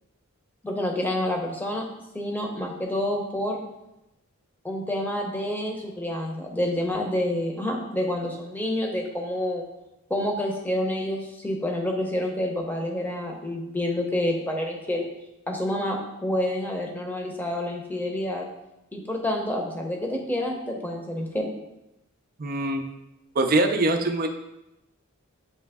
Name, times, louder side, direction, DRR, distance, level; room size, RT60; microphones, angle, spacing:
voice 1, 0.6-1.8 2.1-3.6 4.6-9.7 10.1-15.1 15.5-18.4 18.9-21.5, left 1 dB, 10° left, 1 dB, 0.8 m, -28 dB
voice 2, 22.4-22.8 23.3-24.3, right 2 dB, 40° right, 5 dB, 0.5 m, -23 dB
8.7 x 3.1 x 3.5 m, 0.90 s
head